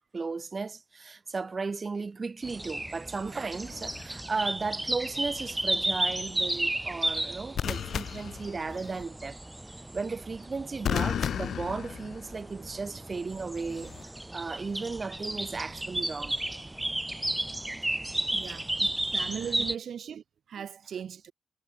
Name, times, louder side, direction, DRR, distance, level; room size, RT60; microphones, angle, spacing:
voice 1, 0.1-9.4 9.9-16.4 18.8-18.9 20.6-20.7, right 4 dB, 40° right, 5.8 m, -35 dB
sound 1, 2.4-19.8, right 1 dB, 15° right, 1.0 m, -34 dB
sound 2, 3.7-4.0 7.5-9.0 10.8-12.5 13.7-14.0, left 8 dB, 80° left, 1.3 m, -33 dB
voice 2, 18.3-18.7 19.1-21.3, right 8 dB, 75° right, 3.0 m, -38 dB
cardioid pair, 70°, 0 cm